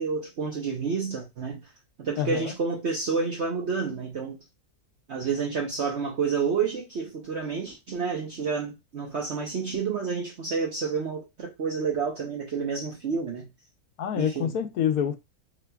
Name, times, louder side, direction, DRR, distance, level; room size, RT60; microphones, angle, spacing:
voice 1, 0.0-1.6 2.0-4.4 5.1-13.5 14.1-14.6, right 5 dB, 55° right, 1.0 m, -29 dB
voice 2, 2.2-2.5 14.0-15.2, left 9 dB, 80° left, 1.1 m, -27 dB
5.8 x 2.9 x 2.2 m
omnidirectional pair, 1.6 m